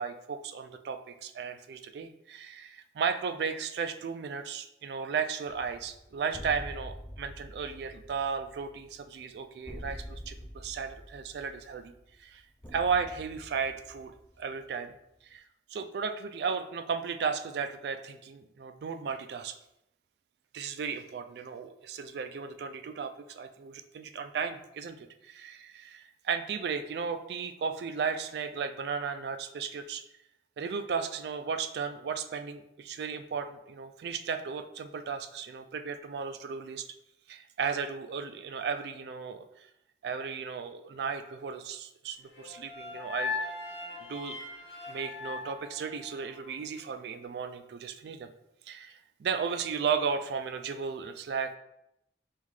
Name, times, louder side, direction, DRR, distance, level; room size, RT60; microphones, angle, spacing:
voice 1, 0.0-11.9 12.2-12.4 12.7-14.1 14.4-14.9 15.2-15.4 15.7-19.5 20.5-30.0 30.6-36.9 37.3-39.5 40.0-43.5 44.1-44.4 44.9-48.3 48.7-51.5, right 6 dB, 70° right, 8 dB, 0.3 m, -35 dB
sound 1, 5.5-14.9, equal, 10° left, 0.4 m, -46 dB
sound 2, 42.3-46.5, left 4 dB, 80° left, 1.4 m, -39 dB
5.5 x 2.4 x 3.1 m, 0.82 s
head